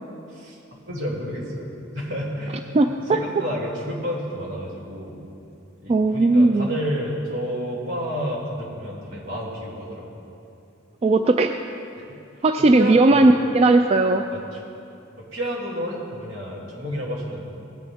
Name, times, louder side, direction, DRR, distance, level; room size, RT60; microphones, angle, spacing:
voice 1, 0.3-0.6 0.8-2.7 3.0-5.2 5.8-10.0 12.0-12.2 12.8-13.3 14.3-14.6 15.2-17.5, equal, 70° right, -4 dB, 2.9 m, -30 dB
voice 2, 2.7-3.2 5.9-6.7 11.0-11.6 12.4-14.2, right 2 dB, 30° right, 7 dB, 0.3 m, -17 dB
17.5 x 9.9 x 3.5 m, 2.7 s
head